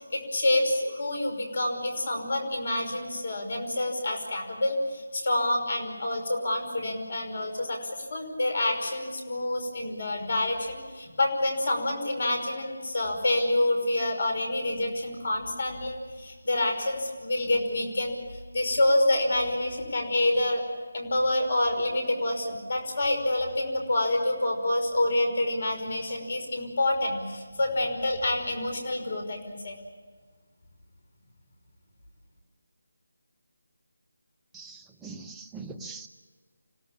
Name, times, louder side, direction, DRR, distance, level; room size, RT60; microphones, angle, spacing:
voice 1, 0.1-20.6 20.9-29.8, left 1 dB, 50° left, 5 dB, 5.5 m, -27 dB
voice 2, 34.5-36.1, right 4 dB, 5° right, 6 dB, 1.0 m, -42 dB
27.0 x 17.5 x 8.7 m, 1.5 s
figure-of-eight pair, 160°, 0 cm